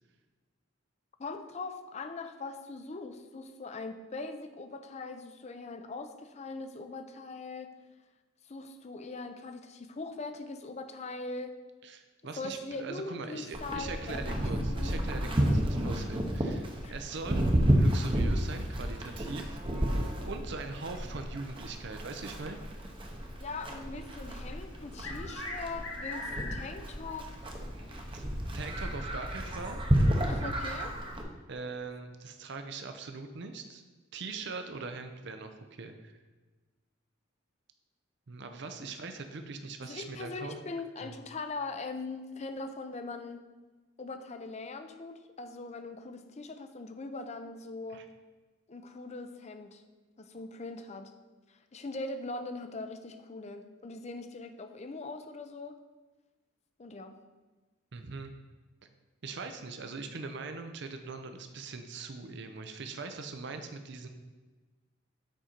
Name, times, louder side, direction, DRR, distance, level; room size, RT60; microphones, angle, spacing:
voice 1, 1.2-7.7 8.5-11.5 12.2-15.0 16.8-17.0 23.2-27.3 30.2-30.9 39.8-43.4 44.0-48.0 48.7-49.8 50.2-51.1 51.5-55.8 56.8-57.2, left 3 dB, 35° left, 8 dB, 0.5 m, -41 dB
voice 2, 11.8-17.5 17.8-19.6 20.3-22.6 28.1-28.2 28.5-29.8 31.5-33.8 34.1-36.2 38.3-40.6 41.0-41.1 47.9-48.0 57.9-58.3 59.2-64.1, right 3 dB, 60° right, 7 dB, 0.6 m, -41 dB
Livestock farm animals working animals, 13.5-31.2, equal, 25° right, 0.8 m, -31 dB
sound 1, 24.7-26.9 27.3-27.4 28.3-28.4 29.6-29.7, left 3 dB, 70° left, 1.4 m, -40 dB
7.4 x 5.1 x 4.4 m, 1.2 s
head